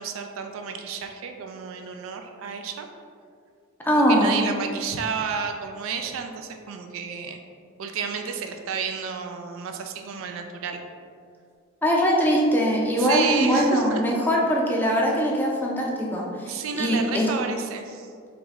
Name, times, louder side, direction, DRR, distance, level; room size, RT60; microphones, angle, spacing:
voice 1, 0.0-2.9 3.9-7.4 7.8-10.8 13.0-14.0 16.5-18.1, right 6 dB, 70° right, 5 dB, 0.3 m, -31 dB
voice 2, 3.9-4.5 11.8-17.3, equal, 10° left, -2 dB, 0.4 m, -22 dB
3.5 x 3.0 x 3.5 m, 2.2 s
head